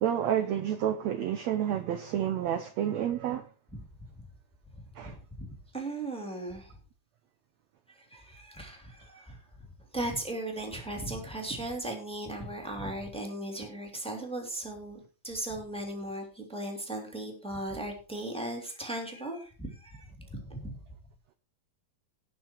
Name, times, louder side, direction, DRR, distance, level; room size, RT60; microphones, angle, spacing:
voice 1, 0.0-3.5 4.9-5.2, right 10 dB, 75° right, 1.6 m, -29 dB
voice 2, 5.0-6.8 7.9-9.7 9.9-15.0 15.2-20.8, right 1 dB, ahead, 2.4 m, -37 dB
18.5 x 6.2 x 4.5 m
omnidirectional pair, 4.1 m